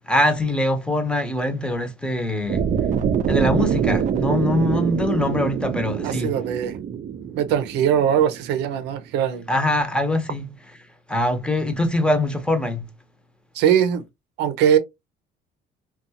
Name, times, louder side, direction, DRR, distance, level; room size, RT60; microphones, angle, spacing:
voice 1, 0.0-2.6 3.3-6.3 9.5-10.5 11.1-12.8, left 1 dB, 5° left, 0.8 m, -23 dB
sound 1, 2.5-8.6, right 8 dB, 45° right, 0.5 m, -25 dB
voice 2, 6.0-6.8 7.4-9.5 13.5-14.0 14.4-14.8, right 9 dB, 90° right, 0.6 m, -21 dB
2.6 x 2.3 x 2.7 m
cardioid pair, 110°, 17 cm